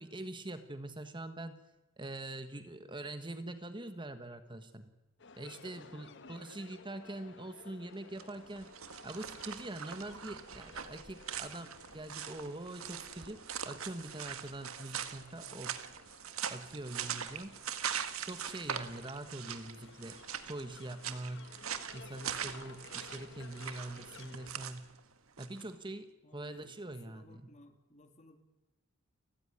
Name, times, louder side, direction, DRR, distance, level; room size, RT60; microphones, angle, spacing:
voice 1, 0.0-1.6 2.0-4.9 5.4-8.7 9.0-15.7 16.5-17.6 18.3-20.2 20.4-21.5 21.9-24.8 25.4-27.5, right 1 dB, 25° right, 9 dB, 1.4 m, -44 dB
sound 1, 5.2-24.5, left 4 dB, 60° left, 1.5 m, -57 dB
sound 2, 8.1-25.7, right 8 dB, 90° right, 1.8 m, -42 dB
voice 2, 26.2-26.7 27.1-28.4, left 1 dB, 35° left, 7 dB, 2.7 m, -58 dB
30.0 x 15.0 x 10.0 m, 1.0 s
head